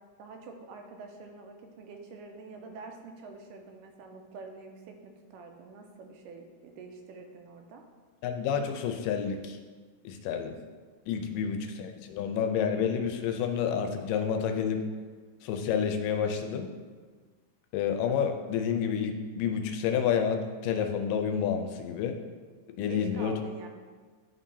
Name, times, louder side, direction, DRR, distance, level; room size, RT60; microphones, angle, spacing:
voice 1, 0.2-7.9 11.3-11.4 22.8-23.7, right 3 dB, 85° right, 3 dB, 2.2 m, -46 dB
voice 2, 8.2-9.6 10.0-10.6 11.1-14.9 15.4-16.7 17.7-22.2 22.8-23.4, left 7 dB, 85° left, 5 dB, 2.3 m, -29 dB
11.0 x 3.8 x 2.8 m, 1.5 s
omnidirectional pair, 3.8 m